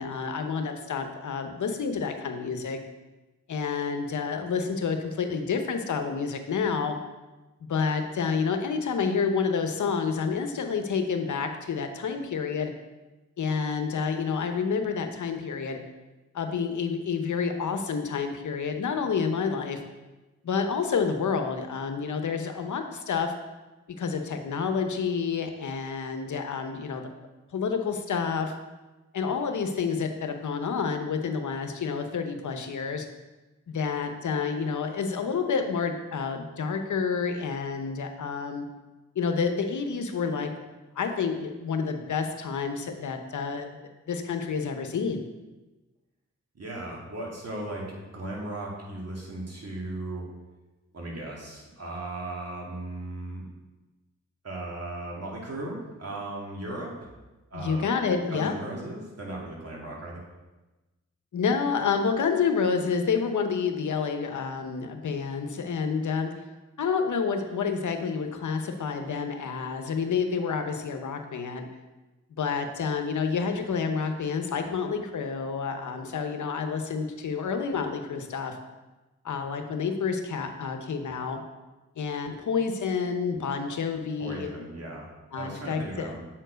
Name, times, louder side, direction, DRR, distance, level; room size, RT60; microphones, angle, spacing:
voice 1, 0.0-2.8 3.5-7.0 7.6-12.7 13.4-15.8 16.3-19.8 20.4-23.3 24.0-27.1 27.5-28.5 29.1-33.1 33.7-38.6 39.1-40.7 41.0-45.2 57.5-58.5 61.3-66.3 66.8-71.7 72.4-78.6 79.2-81.4 82.0-84.5 85.3-86.1, left 5 dB, 80° left, 6 dB, 0.8 m, -29 dB
voice 2, 46.5-50.3 50.9-53.4 54.4-57.1 57.5-57.9 58.3-60.2 84.2-85.1 85.3-86.2, right 1 dB, 55° right, -3 dB, 2.3 m, -37 dB
7.2 x 4.5 x 5.1 m, 1.1 s
cardioid pair, 55°, 30 cm